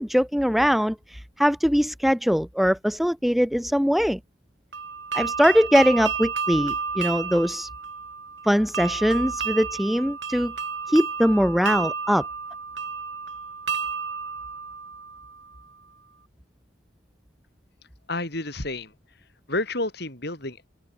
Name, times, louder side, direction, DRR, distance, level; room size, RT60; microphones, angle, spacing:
voice 1, 0.0-4.2 5.1-7.7 8.4-10.5 10.9-12.3, equal, ahead, 0.6 m, -21 dB
sound 1, 4.7-15.5, right 5 dB, 70° right, 4.6 m, -32 dB
voice 2, 18.1-18.9 19.5-20.7, left 2 dB, 55° left, 6.2 m, -30 dB
open air
head